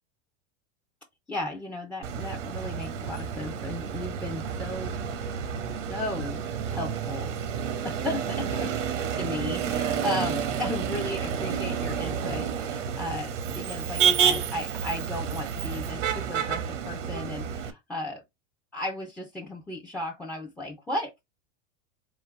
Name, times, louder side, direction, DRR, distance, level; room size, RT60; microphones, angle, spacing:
voice 1, 1.3-5.0 5.9-7.4 7.8-8.7 9.2-18.2 18.7-21.2, left 1 dB, 5° left, 0.3 m, -35 dB
Motor vehicle (road), 2.0-17.7, right 7 dB, 85° right, 1.0 m, -30 dB
3.8 x 2.5 x 4.4 m
supercardioid pair, 130°, 36 cm